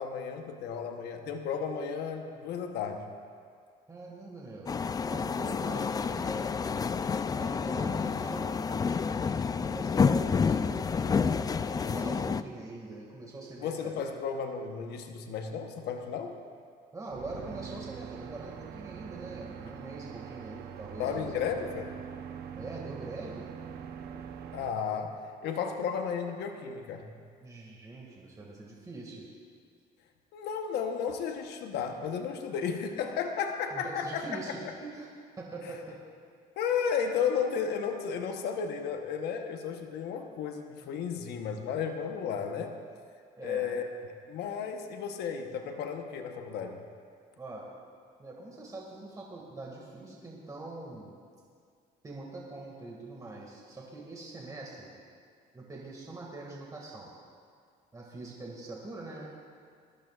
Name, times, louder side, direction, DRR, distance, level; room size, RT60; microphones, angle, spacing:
voice 1, 0.0-3.1 13.6-16.4 21.0-21.9 24.5-27.1 30.3-34.4 36.6-42.7 43.4-43.8 44.3-46.8, left 7 dB, 80° left, 4 dB, 1.0 m, -33 dB
voice 2, 3.9-4.8 5.1-6.5 7.3-8.6 9.3-11.4 11.7-14.2 16.9-21.3 22.6-23.5 27.4-29.2 33.7-35.1 35.4-36.0 43.4-43.8 47.4-47.7 48.2-51.1 52.0-54.9 55.5-57.1 57.9-59.3, right 2 dB, 20° right, -3 dB, 2.0 m, -43 dB
sound 1, 4.7-12.4, left 5 dB, 20° left, 0.3 m, -29 dB
sound 2, 17.1-24.7, right 8 dB, 70° right, 0.9 m, -43 dB
20.5 x 14.5 x 2.4 m, 2.2 s
cardioid pair, 110°, 17 cm